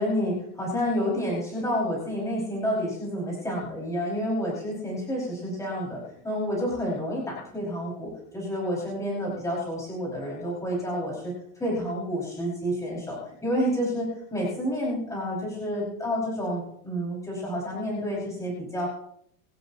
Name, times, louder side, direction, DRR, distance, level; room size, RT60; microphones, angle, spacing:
voice 1, 0.0-11.3 11.6-18.9, equal, 5° left, -5 dB, 5.5 m, -29 dB
26.0 x 13.0 x 2.9 m, 0.70 s
supercardioid pair, 170°, 44 cm